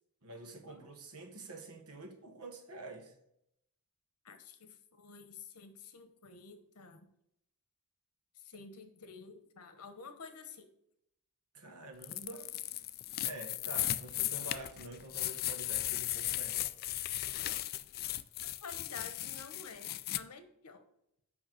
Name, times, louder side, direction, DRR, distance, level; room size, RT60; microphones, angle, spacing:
voice 1, 0.2-3.1 11.5-12.5 13.2-16.7, right 2 dB, 80° right, 1.3 m, -47 dB
voice 2, 4.2-7.1 8.3-10.7 18.4-20.8, left 5 dB, 90° left, 1.1 m, -50 dB
sound 1, 12.0-20.2, left 15 dB, 45° left, 0.3 m, -36 dB
6.4 x 5.7 x 6.4 m
head